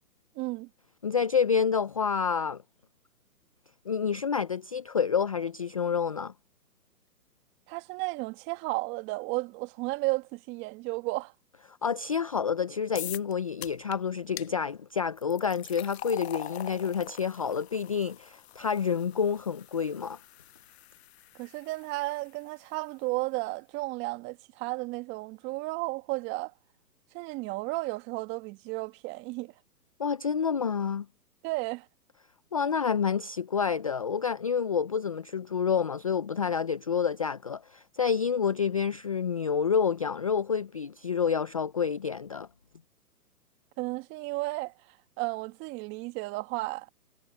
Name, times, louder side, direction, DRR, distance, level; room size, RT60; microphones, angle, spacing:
voice 1, 0.4-0.7 7.7-11.3 21.4-26.5 27.1-29.5 31.4-31.9 43.8-44.7 45.2-46.9, right 23 dB, 25° right, 2.0 m, -33 dB
voice 2, 1.0-2.6 3.9-6.3 11.7-20.2 30.0-31.1 32.5-42.5, left 6 dB, 25° left, 0.4 m, -28 dB
sound 1, 13.0-13.3 13.6-14.0 14.4-14.5 15.2-22.3, left 13 dB, 40° left, 1.2 m, -44 dB
hypercardioid pair, 140°, 47 cm